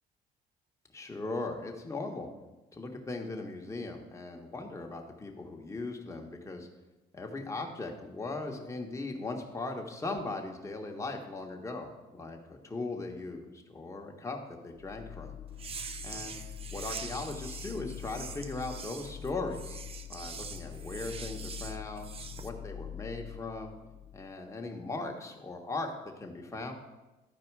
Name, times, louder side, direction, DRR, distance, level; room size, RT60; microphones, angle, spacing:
voice 1, 0.9-2.3 2.7-6.7 7.1-15.3 16.0-16.4 16.7-19.8 20.1-23.7 24.1-25.9 26.2-26.7, left 2 dB, 15° left, 2 dB, 1.4 m, -38 dB
sound 1, 14.7-24.4, left 10 dB, 55° left, 0.7 m, -45 dB
sound 2, 15.5-22.5, right 5 dB, 35° right, 0.6 m, -44 dB
12.0 x 4.7 x 4.7 m, 1.1 s
cardioid pair, 110°, 17 cm